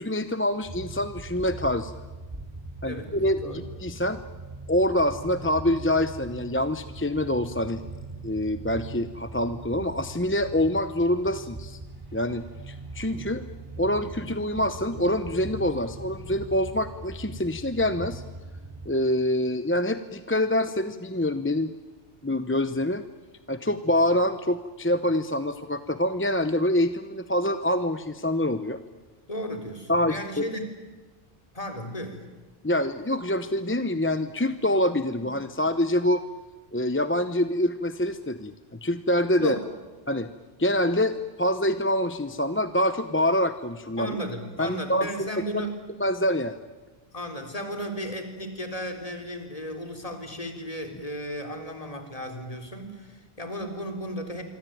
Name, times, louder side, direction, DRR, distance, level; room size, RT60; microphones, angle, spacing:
voice 1, 0.0-1.9 2.8-4.2 4.7-7.8 8.2-11.8 12.1-13.4 13.8-18.2 18.9-21.7 22.2-23.0 23.5-28.8 29.9-30.5 32.6-36.2 36.7-39.6 40.1-40.3 40.6-44.1 44.6-45.3 45.5-45.6 46.0-46.6, left 1 dB, 15° left, 10 dB, 0.7 m, -26 dB
sound 1, 0.6-18.9, right 2 dB, 20° right, 4.2 m, -41 dB
voice 2, 2.8-3.1 3.4-3.6 29.3-30.7 31.5-32.2 39.4-39.7 44.0-45.9 47.1-54.4, equal, 35° left, 5 dB, 3.8 m, -35 dB
25.5 x 25.0 x 9.3 m, 1.3 s
omnidirectional pair, 1.0 m